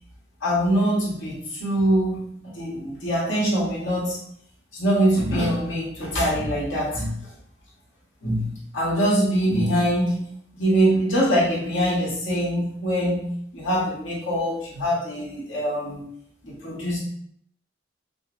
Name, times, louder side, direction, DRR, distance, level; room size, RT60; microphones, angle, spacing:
voice 1, 0.4-4.2 4.7-7.2 8.2-16.0 16.4-17.0, equal, 80° left, -5 dB, 1.3 m, -23 dB
5.3 x 2.1 x 2.5 m, 0.67 s
head